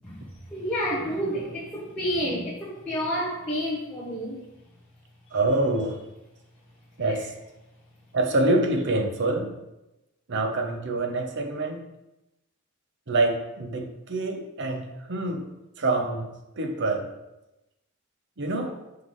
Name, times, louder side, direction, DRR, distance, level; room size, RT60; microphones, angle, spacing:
voice 1, 0.0-4.5 7.1-7.2, equal, 5° left, -9 dB, 1.1 m, -30 dB
voice 2, 5.3-6.0 7.0-7.3 8.1-9.5 10.3-11.8 13.1-15.5 15.8-16.3 16.6-17.1 18.4-18.7, right 2 dB, 55° right, 5 dB, 0.8 m, -26 dB
5.7 x 5.4 x 3.1 m, 0.94 s
head